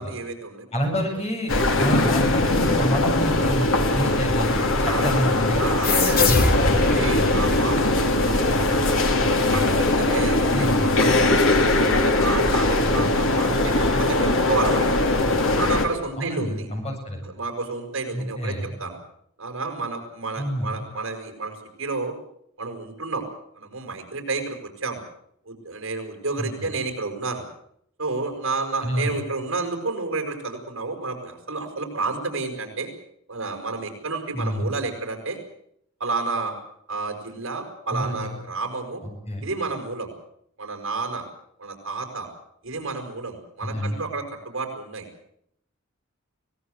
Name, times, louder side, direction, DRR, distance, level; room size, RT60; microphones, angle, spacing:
voice 1, 0.0-0.7 4.8-5.0 5.6-6.4 6.8-8.5 8.8-9.1 9.5-10.7 11.0-13.7 14.0-14.9 15.5-16.7 17.2-19.0 19.4-22.1 22.6-23.2 23.5-25.0 25.5-27.4 28.0-32.9 33.3-35.4 36.0-36.5 36.9-39.0 39.4-40.1 40.6-41.2 41.6-42.3 42.6-45.1, right 3 dB, 65° right, 4 dB, 6.1 m, -30 dB
voice 2, 0.7-5.7 10.5-10.9 16.2-17.3 18.1-18.7 20.4-20.8 26.4-26.5 28.8-29.1 34.3-34.7 37.9-38.2 39.3-39.4 43.6-44.0, equal, 30° left, 2 dB, 7.6 m, -27 dB
sound 1, 1.5-15.9, left 2 dB, 70° left, 3.2 m, -21 dB
sound 2, 5.8-9.0, left 2 dB, 45° left, 3.4 m, -24 dB
24.5 x 18.5 x 8.2 m, 0.71 s
head